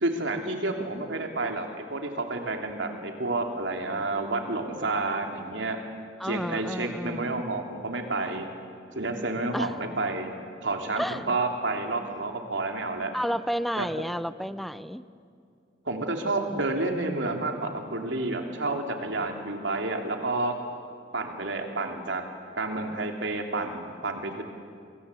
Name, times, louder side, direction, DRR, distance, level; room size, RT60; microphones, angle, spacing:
voice 1, 0.0-5.8 6.2-8.4 8.9-10.3 10.6-13.1 13.8-13.9 15.8-20.6 21.1-22.2 22.6-24.4, right 2 dB, 80° right, 3 dB, 3.1 m, -30 dB
voice 2, 6.2-7.4 9.5-9.7 11.0-11.2 13.1-15.0, equal, ahead, 14 dB, 0.6 m, -31 dB
28.0 x 23.0 x 8.4 m, 2.3 s
head